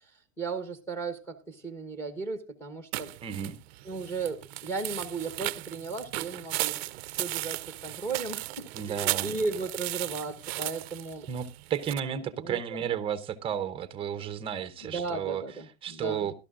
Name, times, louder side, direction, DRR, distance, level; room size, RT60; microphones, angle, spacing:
voice 1, 0.4-3.1 3.8-6.8 7.1-11.3 12.3-12.6 14.8-16.3, right 4 dB, 5° left, 1.1 m, -35 dB
sound 1, 2.9-12.0, right 18 dB, 50° right, 0.5 m, -36 dB
voice 2, 3.2-3.6 8.7-9.4 11.3-15.4 15.8-16.4, right 9 dB, 15° right, 0.7 m, -33 dB
18.5 x 12.0 x 2.5 m
supercardioid pair, 155°, 40 cm